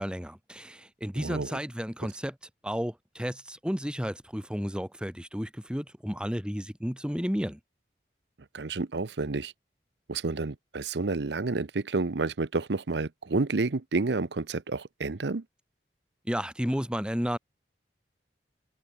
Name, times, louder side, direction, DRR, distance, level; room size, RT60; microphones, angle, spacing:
voice 1, 0.0-2.3 2.6-7.6 16.3-17.4, equal, 5° right, 2.2 m, -32 dB
voice 2, 1.2-1.6 8.5-9.5 10.1-15.4, right 3 dB, 75° right, 0.8 m, -30 dB
head